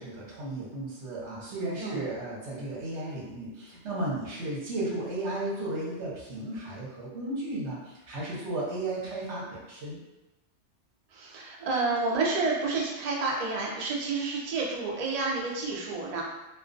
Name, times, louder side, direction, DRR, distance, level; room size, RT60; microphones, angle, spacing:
voice 1, 0.0-10.0, right 2 dB, 75° right, -5 dB, 1.1 m, -34 dB
voice 2, 11.1-16.2, right 3 dB, 60° right, -2 dB, 0.4 m, -29 dB
2.4 x 2.2 x 2.5 m, 1.0 s
omnidirectional pair, 1.2 m